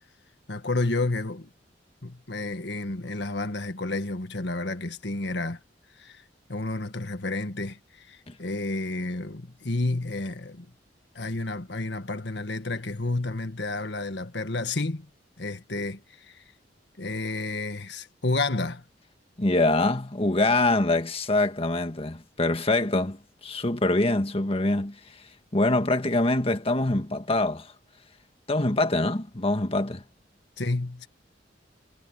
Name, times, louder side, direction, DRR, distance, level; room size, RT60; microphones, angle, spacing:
voice 1, 0.5-1.5 2.0-5.6 6.0-6.2 6.5-10.7 11.1-15.1 15.4-16.4 17.0-18.8 30.6-31.1, left 2 dB, 70° left, 1.7 m, -30 dB
voice 2, 19.4-27.7 28.5-30.0, left 2 dB, 35° left, 1.6 m, -25 dB
head